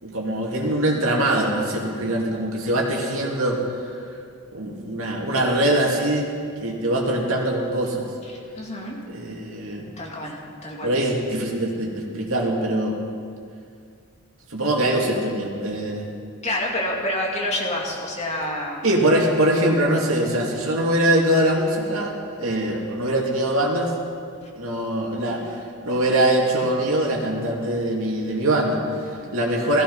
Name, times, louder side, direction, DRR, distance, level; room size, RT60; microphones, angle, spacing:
voice 1, 0.0-3.6 4.5-6.3 6.6-8.1 9.1-9.9 10.8-13.0 14.5-16.1 18.8-23.9 24.6-25.6 25.8-29.8, right 1 dB, 65° right, -1 dB, 2.6 m, -23 dB
voice 2, 8.3-9.0 10.0-10.4 10.6-10.9 16.4-18.9, left 1 dB, 30° left, -2 dB, 2.6 m, -28 dB
16.0 x 15.0 x 5.6 m, 2.3 s
head